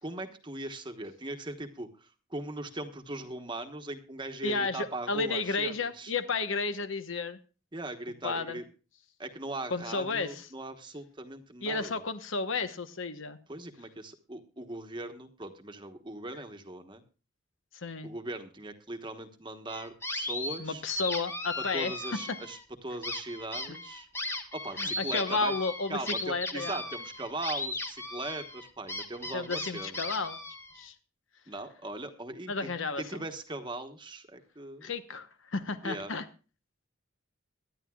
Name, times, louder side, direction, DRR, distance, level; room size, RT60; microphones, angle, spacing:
voice 1, 0.0-6.1 7.7-8.6 9.2-12.0 13.5-17.0 18.0-20.8 21.6-24.1 24.5-25.5 25.9-30.0 31.5-34.9 35.8-36.1, right 2 dB, 25° right, 6 dB, 1.2 m, -39 dB
voice 2, 4.4-7.4 8.2-8.6 9.7-10.5 11.6-13.4 17.7-18.1 20.6-22.2 23.7-23.8 24.8-26.8 29.3-30.4 30.7-30.9 32.5-33.0 34.8-36.2, left 4 dB, 70° left, 10 dB, 1.0 m, -32 dB
sound 1, 19.7-20.6 20.9-22.6 23.0-30.8, left 2 dB, 10° left, 1.4 m, -37 dB
22.5 x 10.5 x 2.3 m, 0.34 s
head